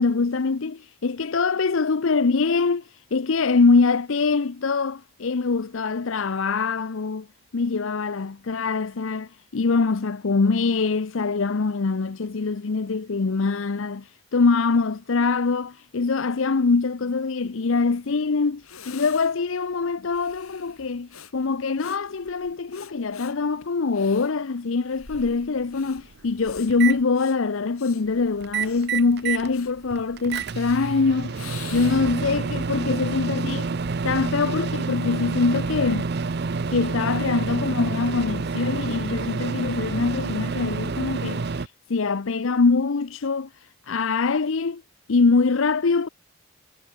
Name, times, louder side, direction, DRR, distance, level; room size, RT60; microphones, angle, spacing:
voice 1, 0.0-7.3 7.5-31.4 31.7-33.7 34.0-36.1 36.7-43.5 43.9-44.8 45.1-46.1, left 4 dB, 65° left, 0.6 m, -23 dB
Breathing, 18.2-18.3 18.6-32.3, left 7 dB, 90° left, 5.9 m, -46 dB
Microwave oven, 25.4-25.5 26.0-27.0 28.4-29.5 29.9-41.7, right 4 dB, 50° right, 0.6 m, -28 dB
head